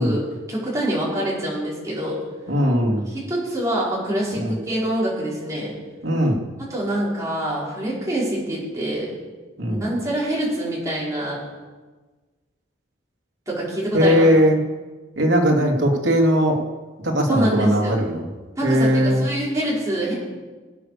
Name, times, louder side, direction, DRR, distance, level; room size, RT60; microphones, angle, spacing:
voice 1, 0.0-2.2 3.1-5.7 6.7-9.2 9.7-11.4 13.5-14.3 17.3-18.1 18.6-20.1, right 1 dB, 15° right, -6 dB, 5.3 m, -25 dB
voice 2, 2.5-3.1 4.3-4.5 6.0-6.4 9.6-9.8 13.9-14.6 15.2-16.6 17.0-18.3 18.6-19.2, equal, 75° right, 0 dB, 3.0 m, -19 dB
21.5 x 8.5 x 6.9 m, 1.3 s
head